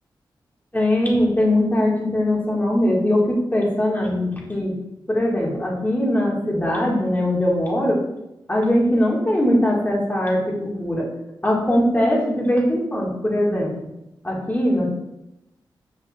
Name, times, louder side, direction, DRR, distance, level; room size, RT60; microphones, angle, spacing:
voice 1, 0.7-4.8 5.1-8.0 8.5-11.1 11.4-13.9 14.2-14.9, left 1 dB, 20° left, -3 dB, 2.1 m, -21 dB
6.8 x 5.4 x 2.6 m, 0.89 s
cardioid pair, 55°, 8 cm